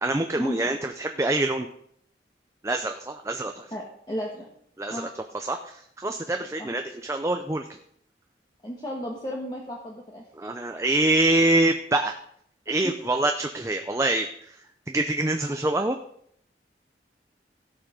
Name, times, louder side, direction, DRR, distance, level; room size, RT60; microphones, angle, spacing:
voice 1, 0.0-1.7 2.6-3.7 4.8-5.1 5.3-7.6 10.4-12.1 12.7-14.3 14.9-16.0, right 2 dB, 15° right, 5 dB, 0.6 m, -25 dB
voice 2, 3.7-4.5 4.9-5.1 6.6-6.7 8.6-10.2 12.7-12.8, equal, 25° left, -2 dB, 1.4 m, -34 dB
16.5 x 5.7 x 5.1 m, 0.68 s
head